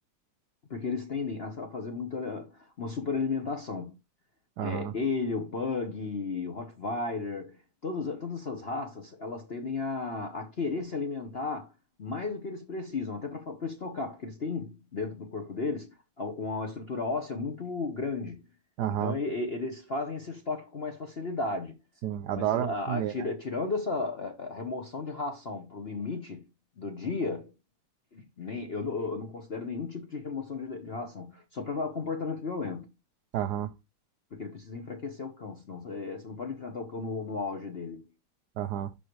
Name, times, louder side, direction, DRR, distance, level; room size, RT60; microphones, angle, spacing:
voice 1, 0.7-3.9 4.6-7.6 7.8-11.7 12.0-18.4 18.9-21.8 22.3-26.5 26.8-27.5 28.1-32.9 34.3-38.0, left 4 dB, 50° left, 0.7 m, -34 dB
voice 2, 4.6-4.9 18.8-19.1 22.0-23.3 33.3-33.7 38.6-38.9, right 11 dB, 90° right, 0.8 m, -30 dB
11.0 x 3.9 x 3.1 m
omnidirectional pair, 2.4 m